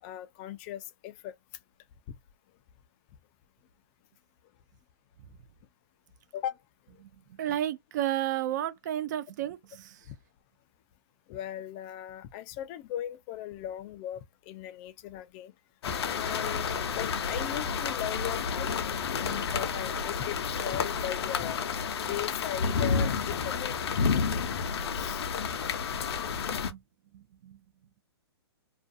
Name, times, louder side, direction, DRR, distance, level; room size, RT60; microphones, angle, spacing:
voice 1, 0.0-1.3 6.3-6.6 10.1-10.2 11.3-15.5 15.9-21.6 22.0-23.7 24.9-25.2, left 11 dB, 25° left, 0.3 m, -38 dB
voice 2, 7.4-10.0 26.7-26.8 27.1-27.6, right 12 dB, 40° right, 0.4 m, -32 dB
sound 1, 15.8-26.7, left 6 dB, 70° left, 0.6 m, -30 dB
2.4 x 2.2 x 2.6 m
hypercardioid pair, 145°, 14 cm